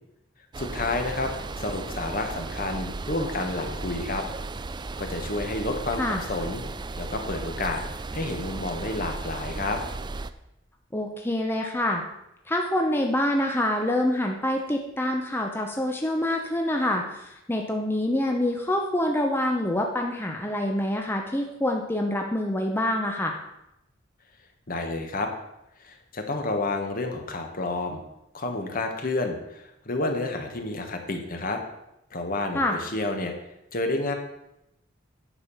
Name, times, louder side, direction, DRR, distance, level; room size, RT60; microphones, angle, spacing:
sound 1, 0.5-10.3, right 3 dB, 25° right, 0.4 m, -35 dB
voice 1, 0.6-4.2 5.0-6.0 6.3-6.6 7.0-7.8 8.1-9.8 24.7-25.3 25.8-28.0 28.3-31.6 32.1-33.3 33.7-34.1, left 2 dB, 45° left, 4 dB, 1.4 m, -30 dB
voice 2, 10.9-12.0 12.5-23.4 32.5-32.8, left 1 dB, 10° left, 1 dB, 0.8 m, -26 dB
9.8 x 6.7 x 5.5 m, 0.85 s
head